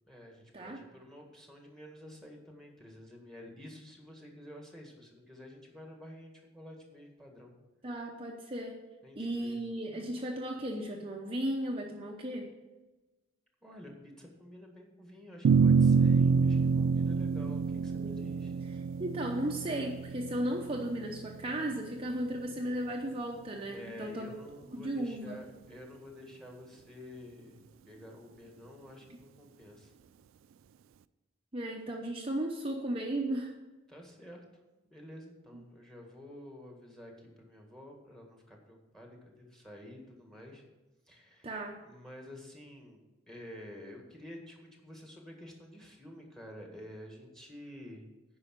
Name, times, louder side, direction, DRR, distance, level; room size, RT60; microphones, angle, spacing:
voice 1, 0.1-7.5 9.0-9.6 13.6-18.5 23.7-29.9 33.9-34.4 34.9-40.6 41.1-41.5 41.8-48.1, left 1 dB, ahead, 1 dB, 1.7 m, -50 dB
voice 2, 7.8-8.8 9.2-12.5 17.8-18.3 19.0-24.4 24.7-25.4 31.5-33.5 35.5-35.6 41.4-41.8, right 1 dB, 25° right, 0 dB, 0.8 m, -35 dB
sound 1, 15.4-22.0, right 5 dB, 70° right, 0.3 m, -27 dB
9.7 x 5.5 x 7.5 m, 1.1 s
head